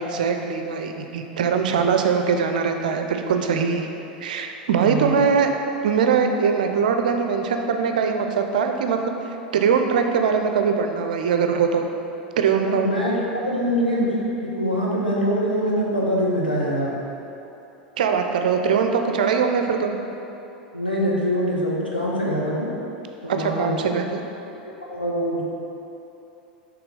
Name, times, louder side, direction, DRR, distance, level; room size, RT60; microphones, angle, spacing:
voice 1, 0.0-3.9 4.2-5.5 5.8-9.1 9.5-11.9 12.4-12.9 18.0-20.0 23.3-24.2, right 6 dB, 60° right, 5 dB, 0.5 m, -22 dB
voice 2, 4.8-5.2 12.5-17.0 20.7-22.7 23.2-23.8 24.6-25.4, equal, 90° left, -5 dB, 1.0 m, -24 dB
5.9 x 3.7 x 4.9 m, 2.9 s
figure-of-eight pair, 85°, 5 cm